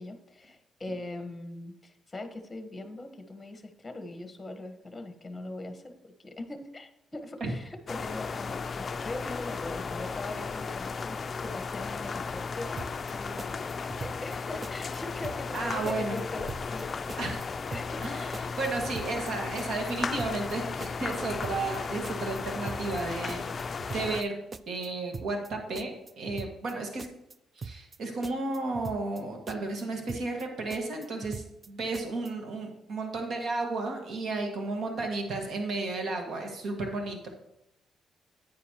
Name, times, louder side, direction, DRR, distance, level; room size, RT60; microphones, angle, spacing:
voice 1, 0.0-12.9 13.1-13.6 14.0-17.1 17.7-18.3, left 2 dB, 20° left, 7 dB, 1.3 m, -41 dB
sound 1, 7.9-24.2, left 5 dB, 40° left, 0.4 m, -35 dB
sound 2, 12.8-13.1 13.4-14.4 14.6-15.0 15.2-15.6 15.9-16.8 17.1-17.4 17.7-18.1 18.3-19.3 19.6-19.9 20.2-20.5 20.8-21.8 22.0-22.4 22.7-23.0 23.3-24.3 24.5-24.9 25.1-25.5 25.7-26.7 27.0-27.3 27.6-28.0 28.2-29.2 29.5-29.8 30.1-30.4 30.7-31.7 31.9-32.3, right 4 dB, 30° right, 0.4 m, -41 dB
voice 2, 15.5-16.2 17.2-17.4 18.0-18.3 18.6-24.4 24.7-27.1 27.6-37.3, right 3 dB, 65° right, 2 dB, 1.7 m, -33 dB
9.6 x 9.4 x 3.0 m, 0.85 s
cardioid pair, 90°, 0 cm